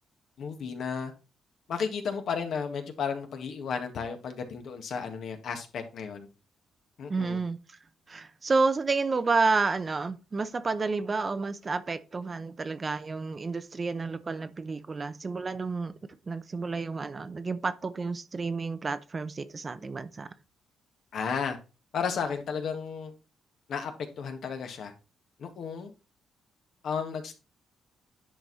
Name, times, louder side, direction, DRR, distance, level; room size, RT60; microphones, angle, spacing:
voice 1, 0.4-1.1 1.7-6.3 7.0-7.4 21.1-21.6 21.9-23.1 23.7-24.9 25.4-25.9 26.8-27.3, left 6 dB, 65° left, 1.7 m, -33 dB
voice 2, 7.1-7.8 8.1-15.9 16.3-20.3, right 4 dB, 30° right, 0.7 m, -30 dB
10.5 x 4.7 x 4.1 m
cardioid pair, 100°, 0 cm